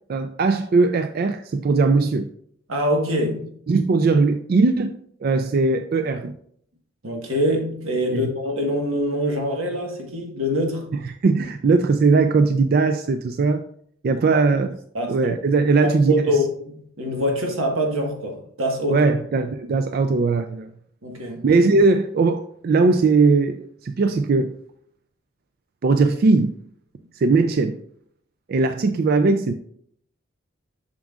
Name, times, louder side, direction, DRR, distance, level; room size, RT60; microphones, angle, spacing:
voice 1, 0.1-2.3 3.7-6.3 8.1-8.3 11.2-13.6 14.0-14.7 15.1-16.2 18.9-20.7 21.4-24.5 25.8-26.5 27.1-27.8 28.5-29.5, right 3 dB, 50° right, 0.3 m, -19 dB
voice 2, 2.7-3.5 7.0-10.9 14.3-14.4 14.9-15.3 15.8-19.0 21.0-21.4, equal, 85° right, 1.4 m, -24 dB
7.2 x 6.1 x 2.4 m
head